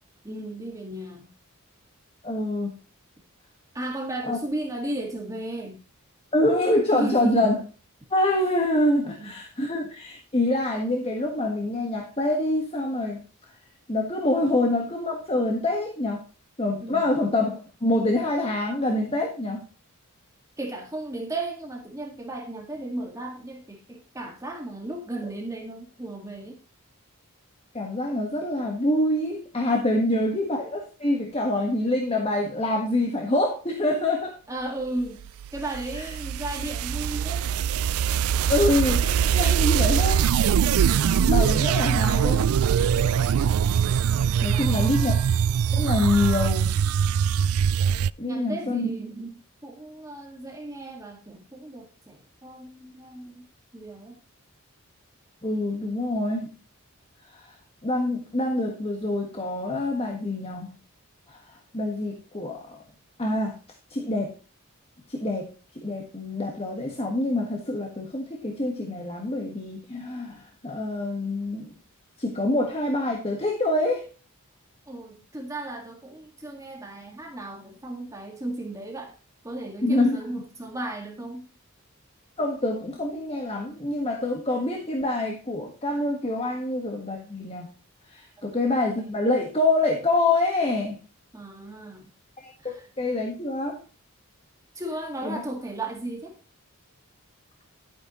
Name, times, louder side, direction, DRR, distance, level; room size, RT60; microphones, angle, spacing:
voice 1, 0.2-1.3 3.7-5.8 6.9-7.6 9.0-9.3 14.4-14.6 16.8-17.1 20.6-26.6 29.9-30.2 34.5-35.2 35.5-37.5 44.5-44.9 48.2-53.5 53.7-54.2 74.9-79.1 79.4-81.5 88.4-88.5 91.3-92.1 92.6-92.9 94.8-96.4, right 2 dB, 15° right, 0 dB, 1.8 m, -35 dB
voice 2, 2.2-2.7 4.2-4.4 6.3-7.5 8.1-13.2 13.9-16.2 16.6-19.6 27.7-34.3 35.9-36.1 38.5-40.7 41.2-42.6 44.1-45.2 45.7-46.8 48.2-48.9 55.4-56.5 57.3-57.6 57.8-60.7 61.3-62.8 63.2-63.5 63.9-64.3 65.1-65.5 65.7-71.7 72.2-74.1 79.8-80.2 82.4-87.7 88.1-91.0 92.4-93.8 95.2-95.4, left 2 dB, 25° left, 2 dB, 1.5 m, -26 dB
sound 1, 35.2-48.1, right 8 dB, 75° right, 0.4 m, -22 dB
12.0 x 8.8 x 3.1 m, 0.35 s
head